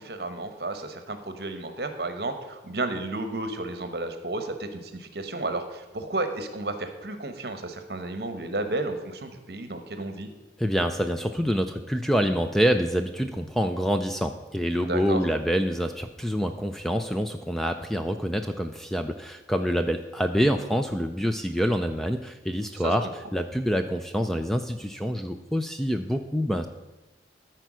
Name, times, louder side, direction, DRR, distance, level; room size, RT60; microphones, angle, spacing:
voice 1, 0.0-10.3 14.8-15.2 22.8-23.1, right 2 dB, 60° right, 8 dB, 1.0 m, -32 dB
voice 2, 10.6-23.1 23.3-26.7, equal, ahead, 7 dB, 0.3 m, -26 dB
13.5 x 4.5 x 6.1 m, 1.1 s
head